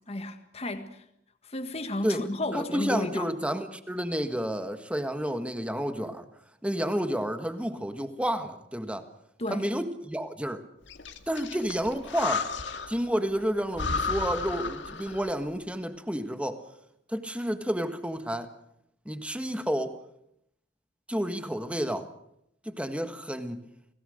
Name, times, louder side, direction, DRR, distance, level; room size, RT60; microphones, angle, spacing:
voice 1, 0.1-1.0 1.4-3.3 9.4-9.7, left 1 dB, 35° left, 1.7 m, -33 dB
voice 2, 2.0-6.3 6.6-9.0 9.5-10.6 11.3-12.5 12.9-16.6 17.1-18.5 19.0-20.0 21.1-22.1 22.6-23.6, equal, 5° right, 1.5 m, -30 dB
Breathing, 10.9-13.1 13.4-13.5 13.7-15.4, left 4 dB, 70° left, 2.1 m, -33 dB
29.5 x 18.5 x 6.5 m
head